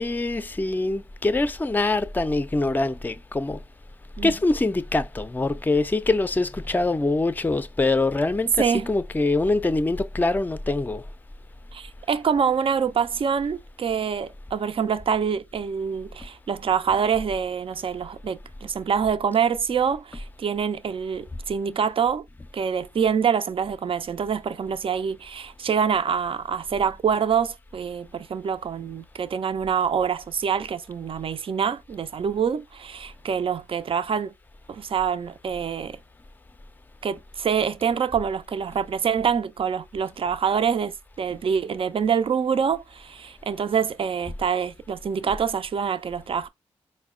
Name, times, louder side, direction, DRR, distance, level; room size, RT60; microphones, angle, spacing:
voice 1, 0.0-3.6 4.2-11.0, left 2 dB, 15° left, 0.4 m, -24 dB
voice 2, 11.7-22.3 22.5-34.3 34.7-36.0 37.0-46.5, right 7 dB, 50° right, 0.4 m, -25 dB
4.0 x 2.1 x 3.6 m
supercardioid pair, 40°, 12 cm